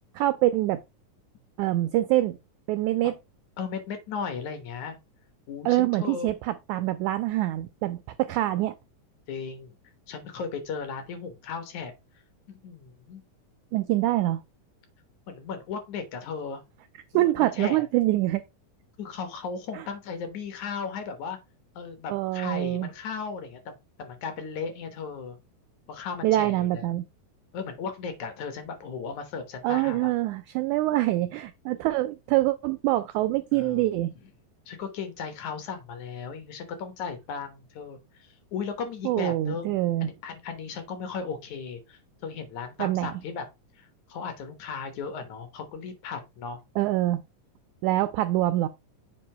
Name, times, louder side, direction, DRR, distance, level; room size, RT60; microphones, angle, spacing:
voice 1, 0.2-0.8 1.6-2.4 2.7-3.1 5.7-8.8 13.7-14.4 17.1-18.4 19.8-19.9 22.1-22.9 26.2-27.1 29.6-34.1 39.0-40.1 42.8-43.1 46.8-47.2 47.8-48.7, right 15 dB, 85° right, 1.7 m, -25 dB
voice 2, 3.6-5.0 5.5-6.4 9.3-9.7 10.1-11.9 12.5-13.2 15.3-16.6 17.1-17.8 19.0-21.4 21.8-25.4 25.9-26.8 27.5-30.1 31.1-31.2 33.5-34.0 34.7-39.7 40.0-43.5 43.8-46.6, left 5 dB, 65° left, 2.3 m, -36 dB
7.6 x 2.8 x 5.5 m
omnidirectional pair, 3.9 m